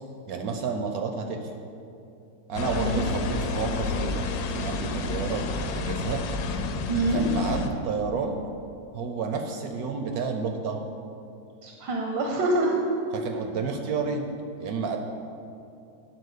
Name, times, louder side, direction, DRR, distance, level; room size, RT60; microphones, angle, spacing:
voice 1, 0.3-1.4 2.5-4.3 4.5-6.2 7.1-8.3 8.9-10.8 13.1-14.3 14.6-15.0, right 5 dB, 70° right, 4 dB, 0.9 m, -30 dB
sound 1, 2.5-7.7, left 3 dB, 85° left, 1.3 m, -30 dB
voice 2, 2.7-3.0 6.9-7.2 11.6-12.7, right 2 dB, 85° right, 0 dB, 1.6 m, -26 dB
9.2 x 4.4 x 6.4 m, 2.7 s
omnidirectional pair, 1.9 m